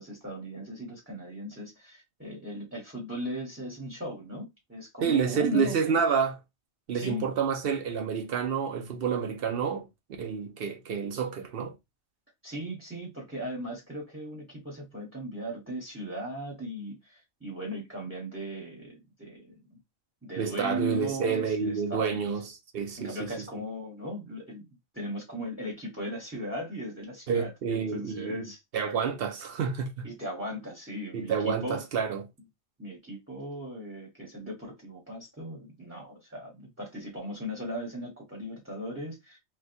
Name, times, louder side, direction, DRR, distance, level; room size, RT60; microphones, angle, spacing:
voice 1, 0.0-6.0 6.9-7.3 12.4-19.8 20.2-22.4 23.0-24.6 24.9-28.6 30.0-31.8 32.8-39.4, equal, 10° right, 0.9 m, -38 dB
voice 2, 5.0-6.3 6.9-9.9 10.2-11.7 20.4-23.3 27.3-28.3 28.7-30.1 31.1-32.2, right 6 dB, 60° right, 0.7 m, -29 dB
3.9 x 2.3 x 2.6 m
omnidirectional pair, 1.3 m